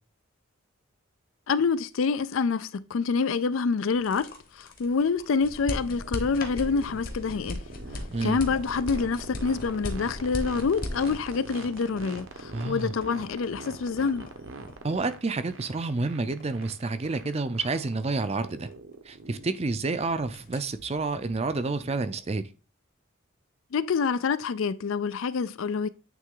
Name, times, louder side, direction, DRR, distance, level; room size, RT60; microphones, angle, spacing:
voice 1, 1.5-7.6 8.2-14.3 23.7-25.9, left 5 dB, 70° left, 0.4 m, -27 dB
sound 1, 3.9-19.8 20.0-20.7, left 1 dB, 40° left, 1.1 m, -38 dB
sound 2, 5.7-22.2, right 2 dB, 70° right, 1.0 m, -44 dB
voice 2, 12.5-12.9 14.8-18.7 19.1-22.4, right 3 dB, 30° right, 0.5 m, -29 dB
9.2 x 3.3 x 3.8 m
head